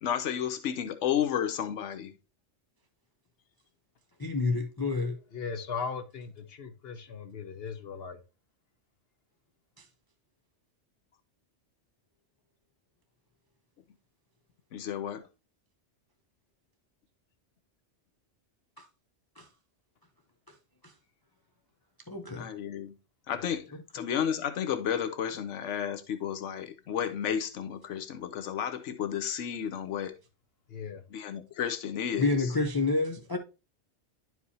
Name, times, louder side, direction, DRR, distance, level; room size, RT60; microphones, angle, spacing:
voice 1, 0.0-2.1 14.7-15.2 22.3-22.9 23.3-23.7 23.9-30.2 31.1-32.3, left 9 dB, 85° left, 1.0 m, -32 dB
voice 2, 4.2-5.2 9.8-9.9 18.8-18.9 19.4-19.5 20.8-20.9 22.1-22.5 32.2-33.4, left 3 dB, 25° left, 0.6 m, -29 dB
voice 3, 5.3-8.2 23.4-23.5 30.7-31.0, left 5 dB, 60° left, 1.4 m, -38 dB
11.0 x 4.7 x 2.7 m
omnidirectional pair, 1.2 m